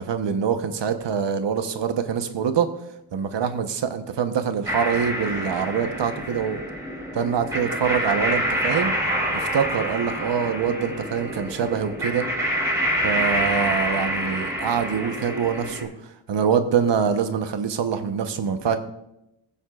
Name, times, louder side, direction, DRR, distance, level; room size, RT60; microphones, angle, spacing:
voice 1, 0.0-2.7 3.1-6.6 7.1-9.0 9.3-12.3 13.0-15.9 16.3-18.8, right 7 dB, 65° right, 8 dB, 1.0 m, -24 dB
sound 1, 4.7-15.8, equal, 5° right, 2.9 m, -27 dB
21.0 x 7.1 x 2.4 m, 0.87 s
wide cardioid pair, 120°, 45 cm